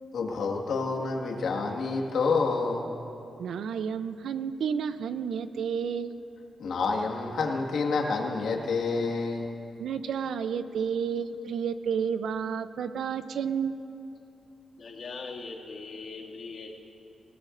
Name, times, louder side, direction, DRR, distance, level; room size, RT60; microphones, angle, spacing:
voice 1, 0.1-2.9 6.6-9.5, left 4 dB, 80° left, 0 dB, 1.8 m, -28 dB
voice 2, 3.4-6.1 9.8-13.7, right 7 dB, 80° right, 11 dB, 0.5 m, -31 dB
voice 3, 14.8-16.7, left 4 dB, 55° left, -4 dB, 2.3 m, -40 dB
27.5 x 18.0 x 2.6 m, 2.7 s
wide cardioid pair, 180°, 0 cm